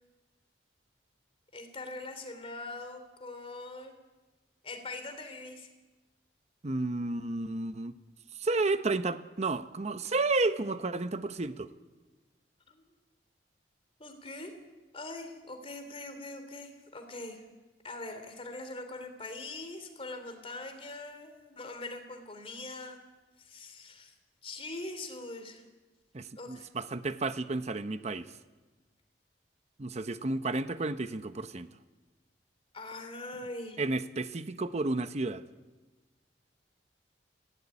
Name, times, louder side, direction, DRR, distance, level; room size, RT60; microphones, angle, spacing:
voice 1, 1.5-3.9 4.6-5.7 12.7-12.8 14.0-14.5 14.9-17.5 17.8-23.0 23.4-24.1 24.4-25.6 26.4-26.7 32.7-33.8, left 2 dB, 35° left, 7 dB, 2.9 m, -42 dB
voice 2, 6.6-7.9 8.4-11.7 26.1-28.3 29.8-31.7 33.8-35.4, right 3 dB, 40° right, 11 dB, 0.8 m, -32 dB
19.5 x 16.0 x 9.8 m, 1.2 s
head